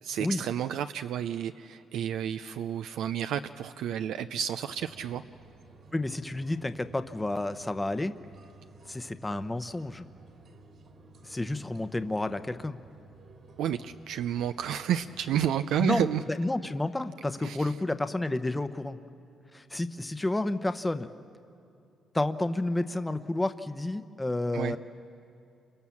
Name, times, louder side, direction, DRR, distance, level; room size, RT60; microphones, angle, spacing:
voice 1, 0.0-5.2 13.6-16.2 17.4-17.7 24.5-24.8, right 10 dB, 80° right, 9 dB, 0.5 m, -31 dB
sound 1, 4.8-15.4, right 3 dB, 55° right, 2.7 m, -55 dB
voice 2, 5.9-8.1 8.9-10.1 11.2-12.8 15.8-19.0 19.5-21.1 22.1-24.8, left 2 dB, 15° left, 9 dB, 0.9 m, -30 dB
29.0 x 24.5 x 7.2 m, 2.6 s
cardioid pair, 90°, 0 cm